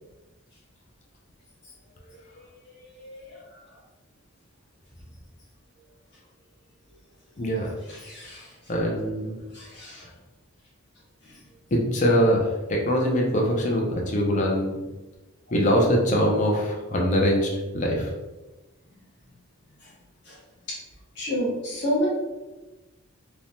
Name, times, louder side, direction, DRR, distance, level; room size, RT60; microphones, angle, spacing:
voice 1, 3.0-3.4 7.9-8.5 9.5-10.0 20.3-20.4 21.1-22.1, equal, 55° left, -8 dB, 1.1 m, -29 dB
voice 2, 7.4-7.7 8.7-9.3 11.7-12.4 12.7-14.7 15.5-17.5 17.7-18.1, equal, 35° left, -1 dB, 0.5 m, -22 dB
3.2 x 2.1 x 2.6 m, 1.1 s
head